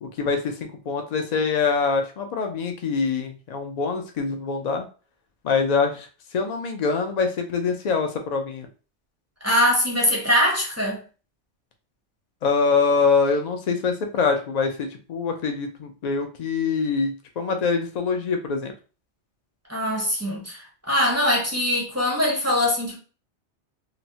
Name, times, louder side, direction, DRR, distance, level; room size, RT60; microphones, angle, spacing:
voice 1, 0.0-4.8 5.4-6.1 6.3-8.7 12.4-18.7, left 5 dB, 65° left, 0.4 m, -24 dB
voice 2, 9.4-11.0 19.7-23.0, equal, 20° right, 0.5 m, -22 dB
3.0 x 2.0 x 2.7 m
omnidirectional pair, 1.2 m